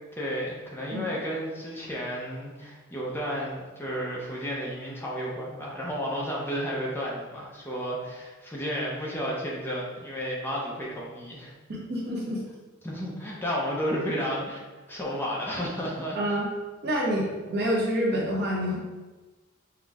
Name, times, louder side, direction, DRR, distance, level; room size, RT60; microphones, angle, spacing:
voice 1, 0.2-11.5 12.8-14.6 14.9-16.4, equal, 10° left, -4 dB, 0.7 m, -32 dB
voice 2, 11.7-12.4 16.1-16.4 16.8-18.8, equal, 50° right, -3 dB, 1.0 m, -27 dB
5.8 x 2.2 x 3.6 m, 1.2 s
head